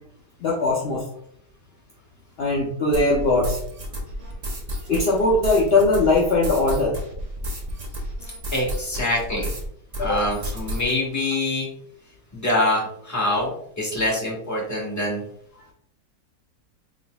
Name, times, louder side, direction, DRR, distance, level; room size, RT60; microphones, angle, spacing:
voice 1, 0.4-1.0 2.4-3.6 4.9-6.9 10.0-10.2, left 2 dB, 60° left, -4 dB, 0.6 m, -20 dB
sound 1, 2.9-9.7 9.9-10.9, equal, 80° right, 0.3 m, -31 dB
voice 2, 8.5-9.5 10.0-11.7 12.3-15.2, left 1 dB, 10° left, -4 dB, 1.0 m, -25 dB
4.0 x 3.6 x 2.2 m, 0.67 s
omnidirectional pair, 1.9 m